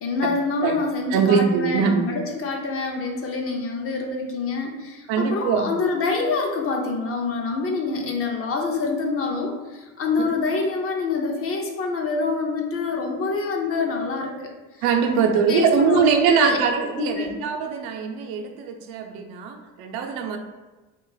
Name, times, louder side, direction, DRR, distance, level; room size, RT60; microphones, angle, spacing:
voice 1, 0.0-14.5 15.0-16.6 17.0-17.3, left 4 dB, 40° left, 2 dB, 0.5 m, -26 dB
voice 2, 1.1-2.2 5.1-5.7 14.8-20.4, right 6 dB, 85° right, 4 dB, 0.6 m, -22 dB
3.4 x 2.4 x 3.8 m, 1.2 s
cardioid pair, 150°, 37 cm